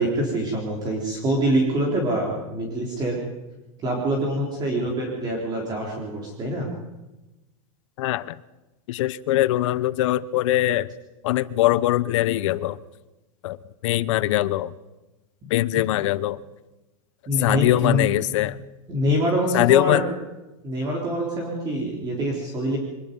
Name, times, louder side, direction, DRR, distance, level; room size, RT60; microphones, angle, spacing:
voice 1, 0.0-3.3 3.8-6.7 15.7-15.8 17.3-18.1 18.9-20.1 20.6-22.8, right 1 dB, 20° right, -1 dB, 3.8 m, -25 dB
voice 2, 8.0-8.4 8.9-10.9 11.2-12.8 13.4-13.6 13.8-14.7 15.5-16.4 17.4-18.6 19.5-20.1, left 15 dB, 60° left, 17 dB, 0.9 m, -22 dB
24.5 x 20.0 x 5.4 m, 1.1 s
supercardioid pair, 160°, 18 cm